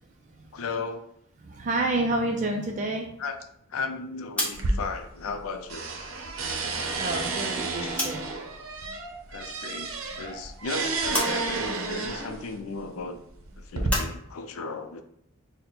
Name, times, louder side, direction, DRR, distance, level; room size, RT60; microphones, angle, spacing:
voice 1, 0.5-1.0 3.2-3.4 3.7-5.9 7.8-8.0 9.3-13.2 13.6-15.0, left 4 dB, 85° left, 7 dB, 0.4 m, -35 dB
voice 2, 1.4-3.2 7.0-8.2, right 2 dB, 35° right, 1 dB, 0.3 m, -28 dB
sound 1, 4.3-8.4 8.7-9.8 10.1-14.1, left 1 dB, 5° left, 0.7 m, -35 dB
sound 2, 4.5-5.4 5.7-12.5 13.3-13.9, right 3 dB, 80° right, 0.6 m, -31 dB
3.9 x 2.1 x 4.3 m, 0.74 s
head